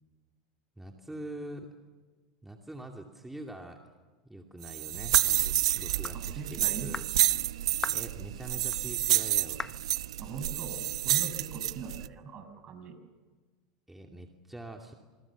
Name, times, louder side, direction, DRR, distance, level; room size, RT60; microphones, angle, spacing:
voice 1, 0.8-1.7 2.4-3.8 4.2-7.0 7.9-9.7 13.9-14.9, right 1 dB, 5° right, 2 dB, 2.6 m, -44 dB
sound 1, 4.6-12.1, right 13 dB, 80° right, 0.8 m, -29 dB
sound 2, 5.1-5.4 6.0-6.2 6.9-7.1 7.8-8.1 8.7-8.8 9.6-9.8, left 3 dB, 15° left, 0.8 m, -37 dB
voice 2, 6.1-6.9 10.2-12.9, right 5 dB, 40° right, 9 dB, 6.3 m, -41 dB
28.0 x 25.5 x 7.3 m, 1.4 s
hypercardioid pair, 100°, 3 cm